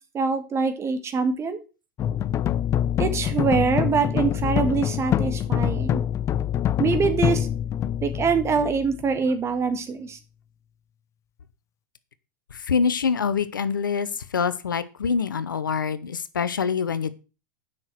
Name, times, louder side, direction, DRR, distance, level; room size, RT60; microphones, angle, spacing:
voice 1, 0.1-1.6 3.0-6.0 6.8-7.5 8.0-10.2, right 5 dB, 25° right, 9 dB, 1.7 m, -24 dB
sound 1, 2.0-9.2, left 10 dB, 30° left, 0.4 m, -25 dB
voice 2, 12.5-17.1, left 6 dB, 90° left, 14 dB, 0.8 m, -25 dB
7.6 x 6.0 x 6.0 m, 0.32 s
hypercardioid pair, 100°, 11 cm